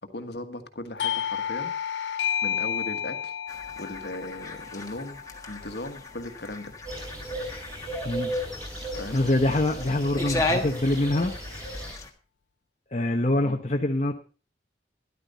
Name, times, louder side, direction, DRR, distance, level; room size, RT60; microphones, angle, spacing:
voice 1, 0.1-1.7 2.4-3.3 3.7-5.2 5.5-6.7 8.9-9.2 13.4-13.6, left 1 dB, 65° left, 8 dB, 1.5 m, -37 dB
Doorbell, 1.0-6.3, left 9 dB, 85° left, 0.5 m, -32 dB
sound 1, 3.5-12.1, left 2 dB, 20° left, 1.5 m, -36 dB
sound 2, 6.8-11.9, equal, 20° right, 6.0 m, -35 dB
voice 2, 9.1-11.3 12.9-14.1, left 1 dB, 40° left, 2 dB, 0.9 m, -24 dB
13.0 x 11.0 x 4.1 m, 0.36 s
head